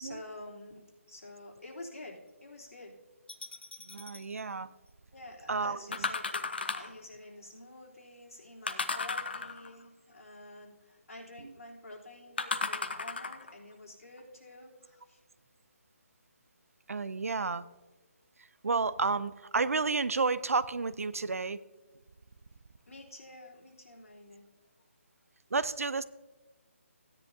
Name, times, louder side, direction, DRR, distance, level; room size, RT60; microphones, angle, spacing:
voice 1, 0.0-2.9 5.1-15.2 22.9-24.5, left 1 dB, 75° left, -4 dB, 3.4 m, -49 dB
sound 1, 3.3-4.2 5.9-7.0 8.7-9.8 12.4-13.5 14.2-14.3, left 4 dB, 45° left, 0.7 m, -35 dB
voice 2, 3.8-4.7 5.5-6.1 16.9-17.6 18.6-21.6 25.5-26.0, right 4 dB, 80° right, 16 dB, 0.6 m, -31 dB
16.0 x 10.0 x 2.7 m, 1.2 s
hypercardioid pair, 180°, 8 cm